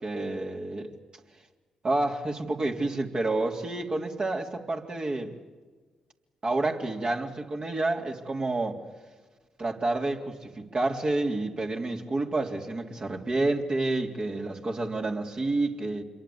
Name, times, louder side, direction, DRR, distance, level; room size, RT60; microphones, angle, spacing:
voice 1, 0.0-0.9 1.8-5.3 6.4-8.8 9.6-16.0, right 2 dB, 45° right, 1 dB, 3.5 m, -29 dB
27.0 x 23.0 x 8.8 m, 1.4 s
hypercardioid pair, 40°, 2 cm